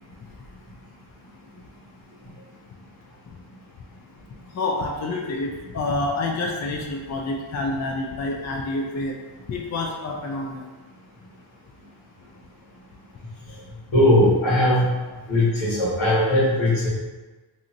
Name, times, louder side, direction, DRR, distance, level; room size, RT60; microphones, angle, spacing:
voice 1, 4.5-9.2 9.5-10.7, left 2 dB, 35° left, 0 dB, 0.4 m, -28 dB
voice 2, 13.9-14.9 15.3-16.9, left 1 dB, 75° left, -8 dB, 1.4 m, -19 dB
2.7 x 2.6 x 2.6 m, 1.2 s
cardioid pair, 50°, 49 cm